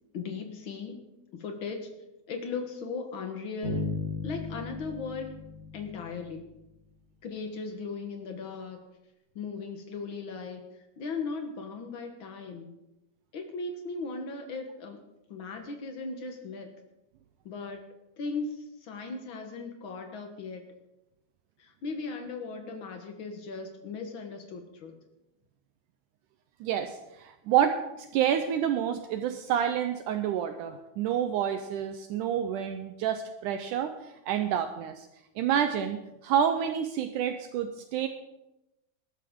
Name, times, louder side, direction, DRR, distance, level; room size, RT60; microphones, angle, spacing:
voice 1, 0.1-1.0 1.3-1.8 2.3-3.9 4.2-5.4 5.7-6.5 7.2-8.8 9.3-10.6 11.0-12.7 13.3-15.0 15.3-16.7 17.4-17.8 18.2-20.6 21.6-24.9, left 4 dB, 75° left, 4 dB, 1.1 m, -37 dB
sound 1, 3.6-6.7, left 3 dB, 25° left, 6.8 m, -36 dB
voice 2, 26.6-27.8 28.1-34.0 34.3-35.1 35.4-38.1, right 9 dB, 85° right, 8 dB, 1.8 m, -28 dB
20.5 x 12.5 x 3.8 m, 0.92 s
omnidirectional pair, 4.4 m